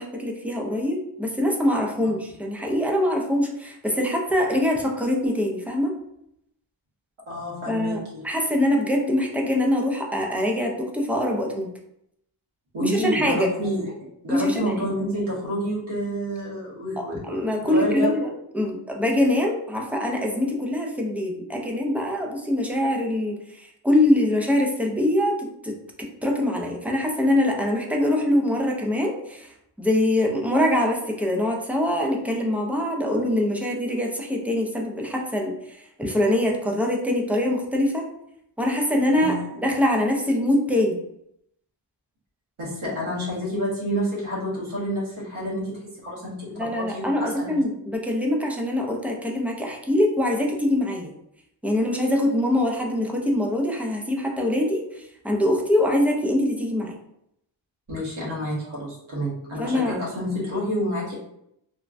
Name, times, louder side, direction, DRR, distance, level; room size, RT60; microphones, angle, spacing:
voice 1, 0.0-5.9 7.7-11.7 12.8-13.5 14.3-14.9 17.0-18.3 18.5-29.5 29.8-38.1 38.6-39.3 39.6-41.0 46.5-51.1 51.6-56.9 59.6-60.0, left 1 dB, 5° right, 0 dB, 0.3 m, -24 dB
voice 2, 7.3-8.2 12.7-13.9 14.2-18.1 39.2-39.4 42.6-47.5 57.9-61.2, equal, 80° right, -6 dB, 1.4 m, -29 dB
3.3 x 2.1 x 2.5 m, 0.77 s
wide cardioid pair, 105°, 49 cm